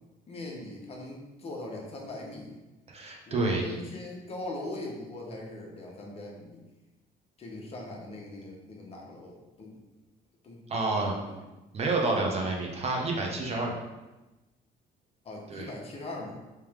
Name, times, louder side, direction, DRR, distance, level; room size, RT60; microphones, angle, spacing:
voice 1, 0.3-2.6 3.3-6.6 7.4-9.8 10.4-11.4 12.1-12.3 15.2-16.4, left 2 dB, 35° left, -1 dB, 0.9 m, -41 dB
voice 2, 2.9-3.6 10.7-11.1 11.7-13.8 15.5-15.7, right 2 dB, 40° right, 0 dB, 0.8 m, -29 dB
3.3 x 3.0 x 3.4 m, 1.1 s
cardioid pair, 110°, 17 cm